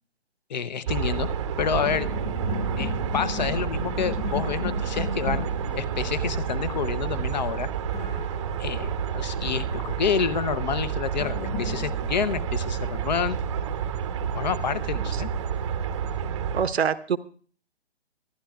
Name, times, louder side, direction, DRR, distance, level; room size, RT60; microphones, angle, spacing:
voice 1, 0.5-1.3 1.6-2.1 2.8-5.5 5.8-7.7 8.6-13.4 14.3-15.3, left 7 dB, 40° left, 17 dB, 0.7 m, -28 dB
sound 1, 0.9-16.7, right 7 dB, 30° right, 0.8 m, -29 dB
sound 2, 1.6-8.9 11.2-15.2, left 8 dB, 20° left, 1.5 m, -38 dB
voice 2, 16.5-17.2, right 7 dB, 70° right, 14 dB, 0.9 m, -25 dB
25.5 x 11.5 x 2.3 m, 0.42 s
figure-of-eight pair, 140°, 33 cm